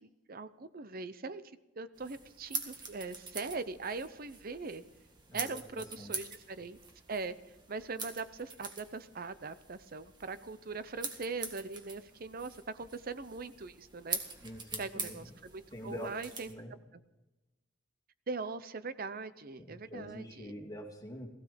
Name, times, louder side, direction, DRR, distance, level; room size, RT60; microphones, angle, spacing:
voice 1, 0.0-1.4 1.8-4.8 5.3-6.8 7.1-7.3 7.7-14.2 14.8-16.5 18.3-20.5, right 4 dB, 50° right, 13 dB, 0.7 m, -41 dB
sound 1, 2.0-16.5, right 4 dB, 25° right, 1.8 m, -44 dB
voice 2, 5.3-6.1 14.4-15.3 15.7-16.7 19.6-21.3, left 1 dB, 20° left, -1 dB, 2.6 m, -46 dB
17.0 x 15.5 x 5.2 m, 1.1 s
head